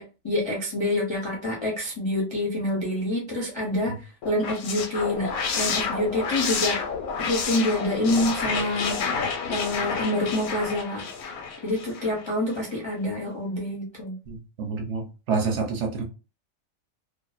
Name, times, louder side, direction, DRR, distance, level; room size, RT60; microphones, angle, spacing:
voice 1, 0.0-6.8 7.2-9.0 9.5-11.0 11.6-14.1, left 1 dB, 40° left, -3 dB, 0.4 m, -27 dB
sound 1, 4.2-12.3, left 5 dB, 85° left, 1.0 m, -29 dB
voice 2, 14.3-16.0, right 4 dB, 65° right, 2 dB, 0.9 m, -28 dB
2.5 x 2.1 x 2.4 m, 0.30 s
omnidirectional pair, 1.4 m